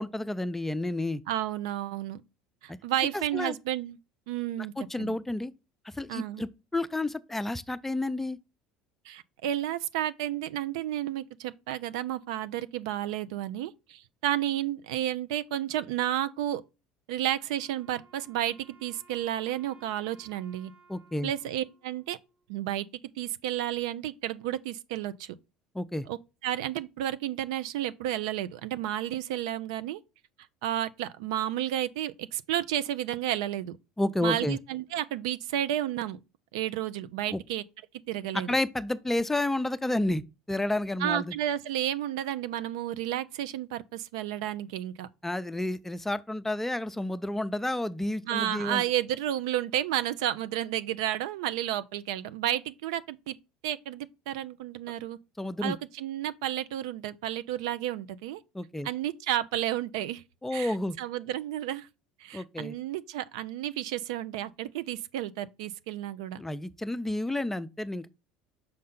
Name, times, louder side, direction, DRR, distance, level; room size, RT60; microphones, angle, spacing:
voice 1, 0.0-1.2 2.7-2.8 3.1-3.6 4.8-5.5 5.8-8.4 20.9-21.3 25.7-26.1 34.0-34.6 37.3-37.4 38.5-41.3 45.2-48.8 55.4-55.7 58.5-58.9 60.4-61.0 62.3-62.8 66.4-68.1, left 1 dB, 10° left, 0.5 m, -30 dB
voice 2, 1.3-2.2 2.6-4.0 4.3-5.2 6.1-6.4 9.0-16.6 17.1-20.7 21.2-22.2 22.5-22.9 23.2-25.3 26.1-26.2 26.4-30.0 30.6-33.8 34.2-36.2 36.5-37.6 38.1-38.5 41.0-45.1 48.3-53.4 53.6-55.2 55.6-58.4 58.8-60.2 60.5-61.9 62.2-66.4, right 12 dB, 75° right, 0.5 m, -32 dB
Wind instrument woodwind instrument, 17.5-22.7, right 4 dB, 60° right, 1.9 m, -59 dB
6.6 x 4.2 x 3.7 m
hypercardioid pair, 75°, 3 cm